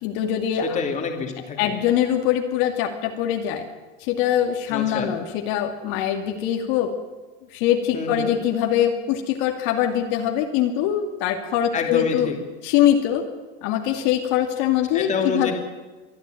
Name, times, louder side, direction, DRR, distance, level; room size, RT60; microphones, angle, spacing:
voice 1, 0.0-0.8 1.6-3.7 4.0-6.9 7.5-12.3 12.6-13.2 13.6-15.5, left 10 dB, 55° left, 3 dB, 2.5 m, -23 dB
voice 2, 0.6-1.7 4.7-5.1 7.9-8.3 11.7-12.3 14.9-15.5, left 5 dB, 20° left, 2 dB, 2.9 m, -27 dB
24.0 x 13.0 x 9.2 m, 1.3 s
supercardioid pair, 155°, 34 cm